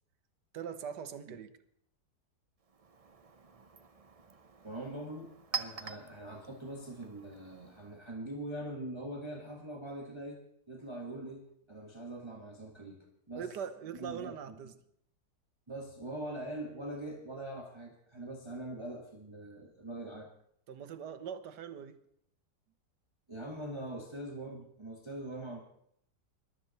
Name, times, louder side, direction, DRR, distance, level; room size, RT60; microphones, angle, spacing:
voice 1, 0.5-1.5 13.4-14.7 20.7-22.0, right 8 dB, 85° right, 1.6 m, -41 dB
Chink clink, 2.6-8.1, right 6 dB, 35° right, 0.5 m, -46 dB
voice 2, 4.6-10.4 10.7-13.5 14.0-14.6 15.7-20.3 23.3-25.6, right 1 dB, 15° right, 1.6 m, -43 dB
21.0 x 12.5 x 4.1 m
omnidirectional pair, 1.8 m